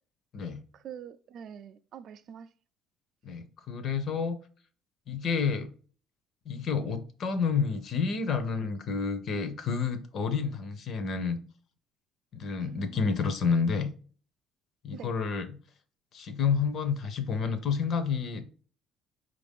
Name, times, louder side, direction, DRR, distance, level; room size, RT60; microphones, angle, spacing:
voice 1, 0.7-2.5 12.6-13.3 14.9-15.1, right 8 dB, 45° right, 0.3 m, -45 dB
voice 2, 3.2-4.4 5.1-5.7 6.5-11.4 12.3-13.9 14.8-15.5 16.1-18.4, left 5 dB, 40° left, 0.6 m, -29 dB
4.7 x 2.5 x 3.4 m
cardioid pair, 165°, 0 cm